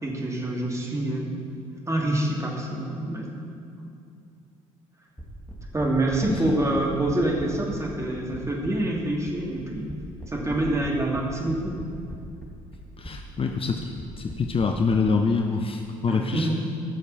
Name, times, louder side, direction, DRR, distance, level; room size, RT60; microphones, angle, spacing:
voice 1, 0.0-1.3 1.9-3.4 3.8-3.9 5.7-9.9 10.3-11.8 16.1-16.5, right 1 dB, 15° right, -2 dB, 2.8 m, -26 dB
sound 1, 5.2-15.0, equal, 5° left, 2.7 m, -40 dB
voice 2, 13.0-13.9 14.2-16.5, left 4 dB, 30° left, 4 dB, 0.8 m, -25 dB
16.0 x 6.4 x 5.8 m, 2.4 s
figure-of-eight pair, 55°, 17 cm